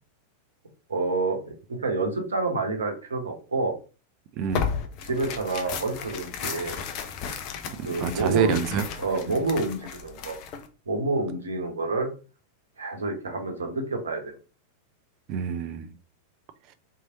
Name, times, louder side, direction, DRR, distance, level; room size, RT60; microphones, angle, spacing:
voice 1, 0.9-3.7 5.0-6.8 7.8-8.6 9.0-10.4 10.9-12.1 12.8-14.3, right 3 dB, 70° right, 0.8 m, -28 dB
voice 2, 4.4-4.7 7.8-8.8 9.3-9.4 15.3-15.9, right 7 dB, 40° right, 0.4 m, -27 dB
Tearing, 4.5-10.7, left 7 dB, 40° left, 0.5 m, -34 dB
3.0 x 2.7 x 2.8 m
figure-of-eight pair, 90°, 0 cm